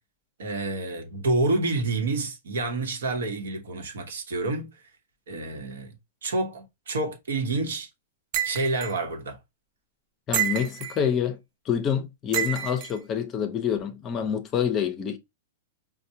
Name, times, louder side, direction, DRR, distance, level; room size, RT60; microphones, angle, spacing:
voice 1, 0.4-4.7 5.3-5.9 6.2-7.9 8.4-9.4, right 2 dB, 85° right, 0.9 m, -28 dB
sound 1, 8.3-8.9 10.3-11.0 12.3-12.9, right 11 dB, 40° right, 0.5 m, -28 dB
voice 2, 10.3-11.4 11.7-15.2, left 8 dB, 25° left, 0.5 m, -27 dB
4.3 x 2.1 x 2.7 m
hypercardioid pair, 140°, 0 cm